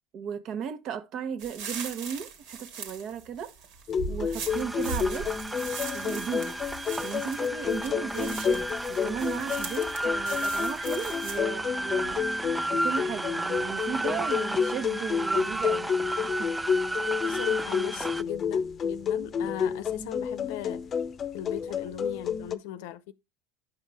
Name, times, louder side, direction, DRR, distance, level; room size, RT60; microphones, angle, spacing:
voice 1, 0.1-3.5 4.1-5.5 5.9-6.6 7.0-12.3 12.7-15.9 16.2-16.5 16.9-17.0, right 7 dB, 50° right, 1.2 m, -36 dB
sound 1, 1.4-11.4, right 4 dB, 65° right, 1.9 m, -40 dB
sound 2, 3.9-22.6, left 6 dB, 35° left, 0.7 m, -30 dB
sound 3, 4.5-18.2, right 1 dB, 10° right, 0.3 m, -33 dB
voice 2, 17.2-20.9 21.3-23.1, left 12 dB, 70° left, 0.7 m, -38 dB
9.9 x 5.7 x 3.5 m
hypercardioid pair, 95°, 0 cm